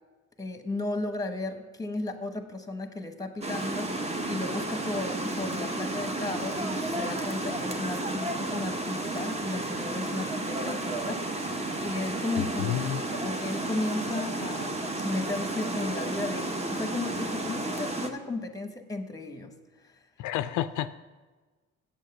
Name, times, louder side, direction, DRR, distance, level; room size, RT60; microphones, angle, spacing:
voice 1, 0.4-19.5, left 2 dB, 10° left, 7 dB, 1.1 m, -35 dB
sound 1, 3.4-18.1, right 2 dB, 20° right, 1.0 m, -32 dB
voice 2, 12.4-13.0 20.2-20.9, left 12 dB, 85° left, 13 dB, 0.4 m, -30 dB
8.1 x 6.4 x 6.8 m, 1.3 s
cardioid pair, 90°, 30 cm